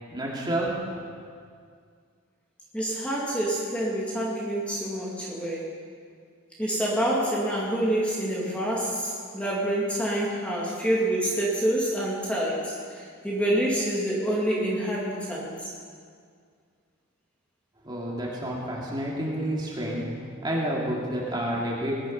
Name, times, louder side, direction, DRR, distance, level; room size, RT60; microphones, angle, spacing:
voice 1, 0.1-1.1 17.8-20.1 20.4-22.0, right 1 dB, 20° right, -4 dB, 2.6 m, -29 dB
voice 2, 2.7-5.7 6.6-15.7, right 1 dB, 5° left, -5 dB, 2.2 m, -27 dB
20.0 x 11.0 x 5.6 m, 2.1 s
head